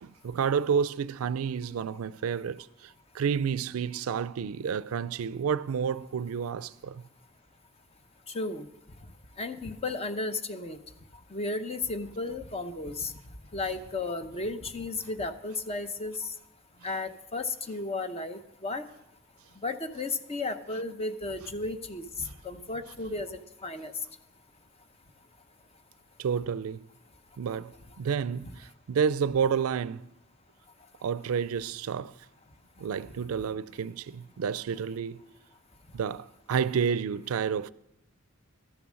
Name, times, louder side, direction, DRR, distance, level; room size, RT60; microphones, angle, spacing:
voice 1, 0.0-7.0 26.2-26.8 27.4-27.7 28.0-30.1 31.0-32.1 32.8-35.3 35.9-37.7, right 7 dB, 80° right, 0.4 m, -30 dB
voice 2, 8.3-8.7 9.4-10.8 11.3-13.1 13.5-16.3 16.8-18.8 19.6-23.9, left 3 dB, 30° left, 0.7 m, -34 dB
12.5 x 7.0 x 6.2 m
head